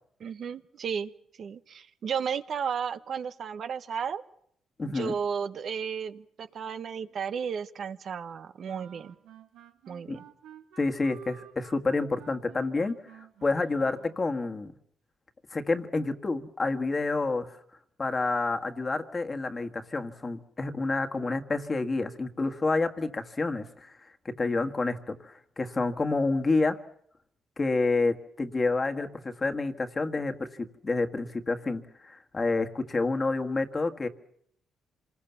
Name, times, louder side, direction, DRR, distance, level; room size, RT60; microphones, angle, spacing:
voice 1, 0.2-1.1 1.4-4.2 4.9-9.1 9.9-10.2, right 7 dB, 55° right, 11 dB, 1.1 m, -33 dB
voice 2, 4.8-5.1 10.1-10.2 10.8-14.7 15.5-17.6 18.0-24.0 24.3-26.8 27.6-30.5 30.8-34.1, left 3 dB, 30° left, 6 dB, 1.7 m, -29 dB
sound 1, 8.6-14.3, right 10 dB, 90° right, 1.8 m, -52 dB
26.5 x 20.5 x 7.1 m, 0.68 s
cardioid pair, 90°, 0 cm